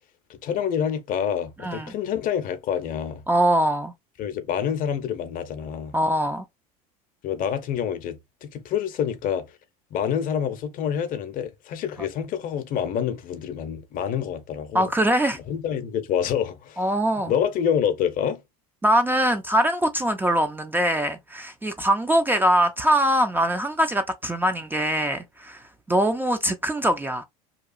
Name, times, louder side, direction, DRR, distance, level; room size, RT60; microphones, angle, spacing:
voice 1, 0.4-3.2 4.2-5.9 7.2-9.5 9.9-14.9 15.5-16.8 17.3-18.4, left 8 dB, 50° left, 0.6 m, -27 dB
voice 2, 1.6-1.9 3.3-3.9 5.9-6.4 14.7-15.4 16.8-17.3 18.8-27.2, right 1 dB, 10° right, 0.3 m, -22 dB
2.8 x 2.3 x 2.4 m
hypercardioid pair, 85°, 19 cm